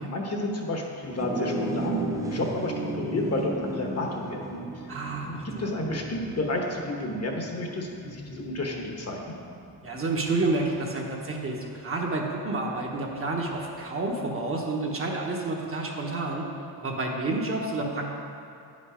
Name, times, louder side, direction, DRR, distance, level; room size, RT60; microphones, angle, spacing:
voice 1, 0.1-4.6 5.2-9.4, left 2 dB, 35° left, 1 dB, 1.1 m, -31 dB
sound 1, 1.1-10.7, right 1 dB, 10° right, 0.6 m, -35 dB
voice 2, 4.9-5.7 9.8-16.5 16.8-18.1, right 2 dB, 30° right, -1 dB, 1.1 m, -29 dB
9.7 x 5.4 x 5.0 m, 2.6 s
cardioid pair, 120°, 41 cm